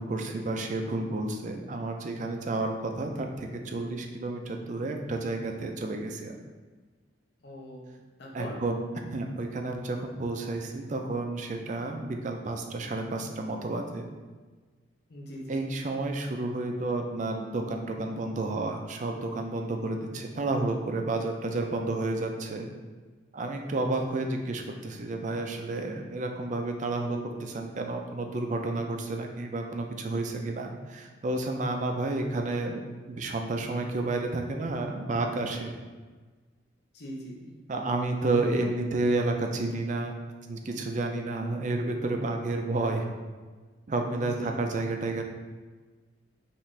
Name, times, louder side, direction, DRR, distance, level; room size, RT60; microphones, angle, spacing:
voice 1, 0.0-6.4 8.3-14.1 15.5-22.7 23.3-32.8 33.1-35.7 37.7-40.1 40.4-43.1 43.9-45.2, right 2 dB, 40° right, 4 dB, 0.4 m, -31 dB
voice 2, 7.4-7.8 8.2-8.6 15.1-15.6 36.9-37.5 44.2-44.5, equal, 60° left, -2 dB, 0.8 m, -41 dB
5.7 x 2.6 x 3.2 m, 1.4 s
head